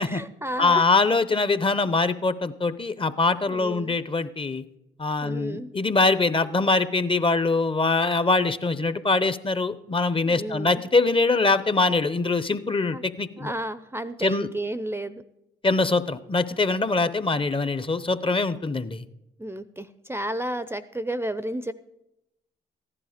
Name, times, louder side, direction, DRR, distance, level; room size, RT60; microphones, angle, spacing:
voice 1, 0.0-0.9 3.5-4.0 5.2-5.7 10.2-10.8 12.9-13.0 13.4-15.2 19.4-21.7, right 1 dB, 10° right, 14 dB, 0.6 m, -32 dB
voice 2, 0.6-4.6 5.0-13.5 14.2-14.5 15.6-19.0, left 3 dB, 25° left, 14 dB, 0.8 m, -23 dB
14.5 x 11.0 x 5.1 m, 0.89 s
supercardioid pair, 50°, 21 cm